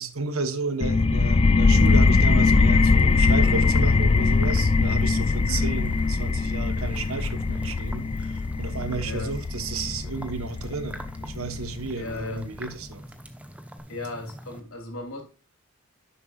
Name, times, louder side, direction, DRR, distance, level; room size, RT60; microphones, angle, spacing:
voice 1, 0.0-13.0, right 4 dB, 85° right, 1.2 m, -33 dB
sound 1, 0.8-12.2, left 4 dB, 25° left, 0.3 m, -21 dB
sound 2, 1.7-14.6, equal, 5° right, 0.9 m, -43 dB
voice 2, 11.9-12.5 13.9-15.2, left 2 dB, 80° left, 2.9 m, -36 dB
10.5 x 7.2 x 2.4 m
head